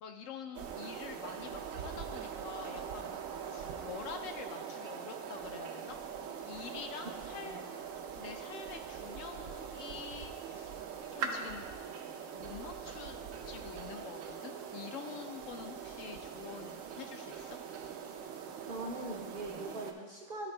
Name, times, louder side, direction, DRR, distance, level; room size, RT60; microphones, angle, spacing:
voice 1, 0.0-6.0 6.4-7.6 8.2-10.8 11.1-11.7 12.3-17.6, left 6 dB, 70° left, 6 dB, 0.9 m, -47 dB
sound 1, 0.5-19.9, right 6 dB, 70° right, 0.9 m, -42 dB
voice 2, 18.7-20.5, right 2 dB, 55° right, 0 dB, 0.6 m, -41 dB
11.5 x 4.3 x 3.2 m, 1.4 s
omnidirectional pair, 1.5 m